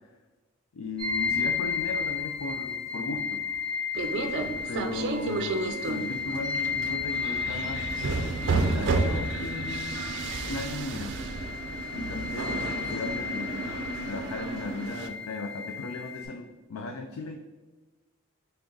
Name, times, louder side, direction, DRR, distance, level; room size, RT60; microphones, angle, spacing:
voice 1, 0.7-3.4 4.7-7.8 8.4-10.0 10.4-11.1 11.9-13.8 14.1-17.4, left 3 dB, 90° left, 4 dB, 0.4 m, -36 dB
sound 1, 1.0-16.2, left 6 dB, ahead, 1.0 m, -34 dB
sound 2, 3.9-15.1, right 3 dB, 55° right, 0.4 m, -32 dB
3.9 x 3.4 x 3.7 m, 1.3 s
head